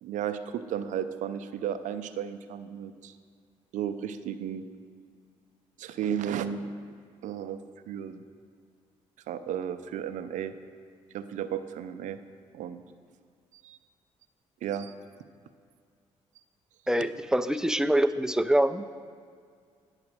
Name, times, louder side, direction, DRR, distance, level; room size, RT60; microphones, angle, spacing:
voice 1, 0.0-3.1 3.7-4.6 5.8-6.6 7.2-7.6 7.9-8.2 9.3-10.5 11.1-12.2 12.5-12.8 13.6-13.8 14.6-14.9, right 9 dB, 70° right, 10 dB, 0.5 m, -33 dB
voice 2, 16.9-18.8, right 1 dB, 5° right, 12 dB, 0.4 m, -25 dB
9.6 x 4.9 x 6.1 m, 2.1 s
supercardioid pair, 60°, 13 cm